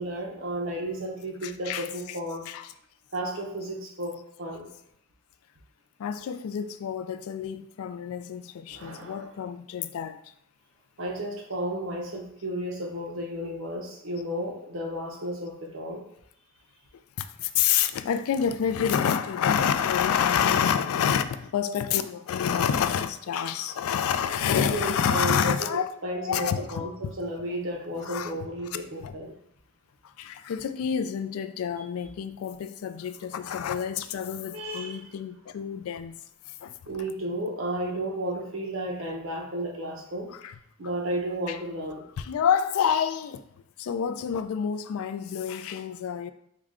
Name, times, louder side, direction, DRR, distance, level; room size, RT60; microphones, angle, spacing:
voice 1, 0.0-2.5 3.1-4.7 8.7-9.3 11.0-16.0 24.6-29.3 33.2-33.3 34.5-35.0 36.9-40.3 40.8-42.1, right 1 dB, 70° right, 0.8 m, -33 dB
voice 2, 1.4-2.2 2.5-2.7 6.0-10.2 17.2-27.1 28.0-28.3 29.0-29.1 30.0-36.2 36.6-36.8 40.3-40.5 41.5-41.6 42.2-43.4 43.8-46.3, left 8 dB, 85° left, 0.3 m, -28 dB
4.7 x 2.2 x 3.6 m
head